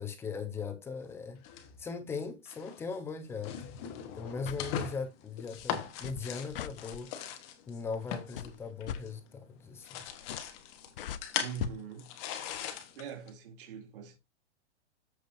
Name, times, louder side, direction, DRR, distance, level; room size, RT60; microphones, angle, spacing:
voice 1, 0.0-1.4 1.8-3.6 4.1-7.1 7.7-10.0, left 5 dB, 5° left, 0.9 m, -39 dB
sound 1, 1.4-2.0 2.5-2.8 3.3-9.4 9.6-13.3, left 9 dB, 25° left, 1.2 m, -40 dB
sound 2, 4.3-4.7 5.6-7.0 7.9-8.1 8.4-9.0 10.1-10.6 10.9-11.8 12.5-12.6, left 9 dB, 50° left, 0.8 m, -40 dB
voice 2, 11.4-12.1 13.0-14.2, right 7 dB, 50° right, 3.0 m, -43 dB
14.0 x 5.0 x 2.7 m
hypercardioid pair, 165°, 35 cm